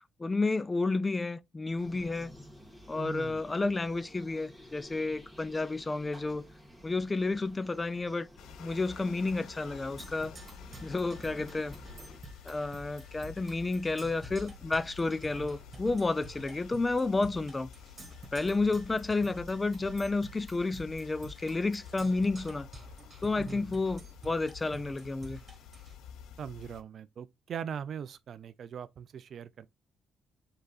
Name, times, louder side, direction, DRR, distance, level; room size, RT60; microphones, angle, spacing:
voice 1, 0.2-2.3 2.9-6.4 6.8-8.3 8.6-10.3 10.8-11.7 12.5-17.7 18.3-22.7 23.2-25.4, left 3 dB, 20° left, 0.3 m, -31 dB
sound 1, 1.8-12.2, equal, 5° left, 1.5 m, -53 dB
voice 2, 3.0-3.4 23.4-23.7 26.4-29.7, right 8 dB, 60° right, 0.3 m, -41 dB
sound 2, 8.4-26.8, left 8 dB, 85° left, 0.4 m, -50 dB
Percussion, 10.0-26.0, right 2 dB, 30° right, 1.6 m, -50 dB
5.2 x 3.9 x 2.4 m
cardioid pair, 90°, 0 cm